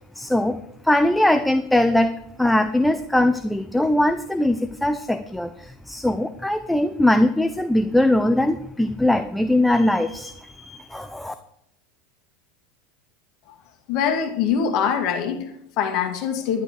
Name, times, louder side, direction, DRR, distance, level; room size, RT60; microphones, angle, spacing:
voice 1, 0.2-0.6 0.8-2.1 2.4-11.3, left 1 dB, 5° left, 9 dB, 0.8 m, -21 dB
voice 2, 13.9-16.6, left 7 dB, 55° left, 5 dB, 2.1 m, -24 dB
11.5 x 11.0 x 5.1 m, 0.76 s
hypercardioid pair, 85°, 0 cm